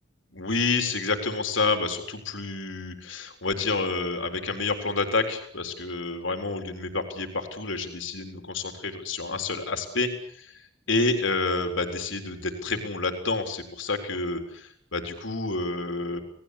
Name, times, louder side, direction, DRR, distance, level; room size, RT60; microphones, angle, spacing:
voice 1, 0.3-16.2, left 3 dB, 80° left, 5 dB, 4.0 m, -29 dB
29.0 x 19.0 x 8.4 m, 0.63 s
head